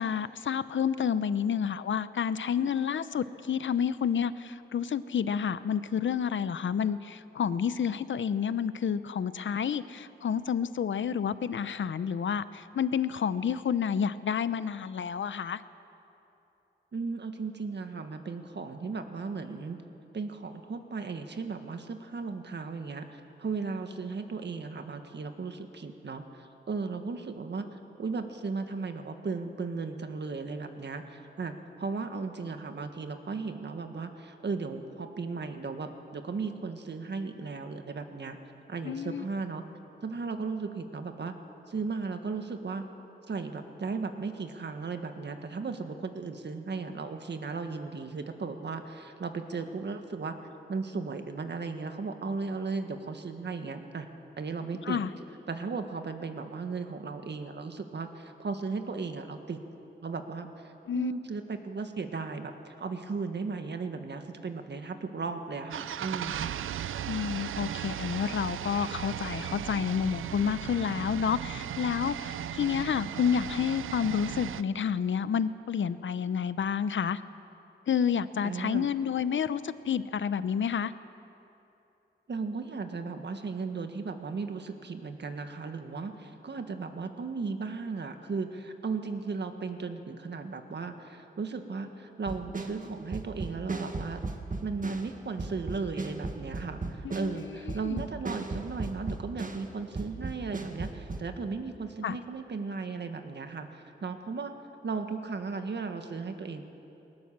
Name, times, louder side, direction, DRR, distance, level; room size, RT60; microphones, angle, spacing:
voice 1, 0.0-15.6 38.8-39.2 54.8-55.1 60.9-61.1 67.1-77.2 77.9-80.9 97.0-97.5 97.8-98.0 102.0-102.2, left 7 dB, 70° left, 14 dB, 0.8 m, -29 dB
voice 2, 16.9-19.8 20.1-38.4 38.7-39.6 40.0-41.3 41.7-42.9 43.3-50.4 50.7-54.1 54.4-55.0 55.5-59.6 60.0-66.5 78.4-78.9 82.3-94.2 94.6-104.5 104.8-106.7, right 4 dB, 60° right, 6 dB, 1.7 m, -36 dB
sound 1, 65.7-74.6, right 10 dB, 90° right, 0.5 m, -36 dB
sound 2, 92.3-95.1 95.4-99.7 100.0-101.2, right 3 dB, 40° right, 1.8 m, -36 dB
19.5 x 19.5 x 7.4 m, 2.9 s
cardioid pair, 60°, 20 cm